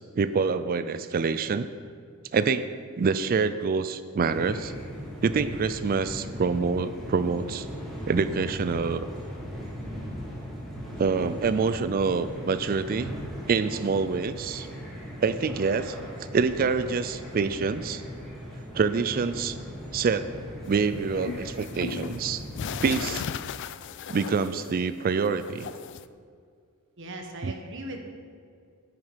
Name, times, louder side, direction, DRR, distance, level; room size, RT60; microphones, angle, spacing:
voice 1, 0.2-1.7 2.3-2.7 2.9-4.7 5.2-7.7 8.1-9.0 11.0-13.1 13.5-14.7 15.2-16.0 16.3-18.0 18.7-19.6 19.9-20.3 20.6-22.4 22.8-23.2 24.1-25.7 27.4-27.5, right 5 dB, 40° right, 12 dB, 0.4 m, -26 dB
sound 1, 4.2-23.0, equal, ahead, 2.6 m, -38 dB
sound 2, 20.6-25.0 25.2-26.0, left 7 dB, 55° left, 0.3 m, -36 dB
voice 2, 27.0-28.0, right 1 dB, 60° right, 3 dB, 1.3 m, -38 dB
9.4 x 9.4 x 5.1 m, 2.2 s
head